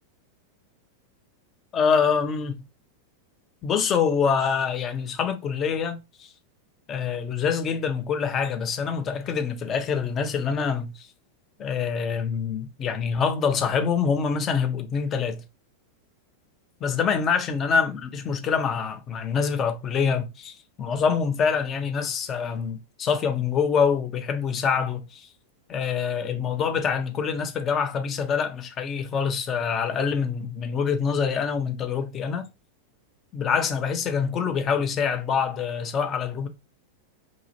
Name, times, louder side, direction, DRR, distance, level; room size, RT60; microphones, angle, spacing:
voice 1, 1.7-2.7 3.6-6.3 6.9-11.1 11.6-15.4 16.8-25.3 25.7-32.5 33.3-36.5, left 6 dB, 30° left, 0.5 m, -25 dB
2.7 x 2.0 x 2.8 m
figure-of-eight pair, 90°, 0 cm